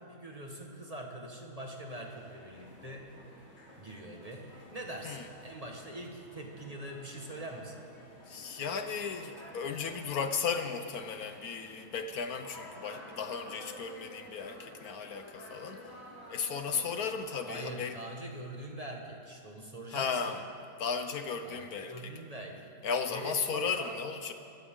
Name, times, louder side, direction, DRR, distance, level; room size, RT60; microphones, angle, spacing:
voice 1, 0.0-3.1 3.8-7.8 17.4-20.4 21.4-22.7 23.1-24.0, right 1 dB, 25° right, 0 dB, 1.6 m, -43 dB
sound 1, 1.9-17.7, left 1 dB, 40° left, 3.4 m, -51 dB
voice 2, 8.3-15.8 16.3-18.0 19.9-20.4 20.8-22.1 22.8-24.3, left 6 dB, 65° left, 7 dB, 1.2 m, -35 dB
26.0 x 14.0 x 3.8 m, 2.4 s
omnidirectional pair, 1.7 m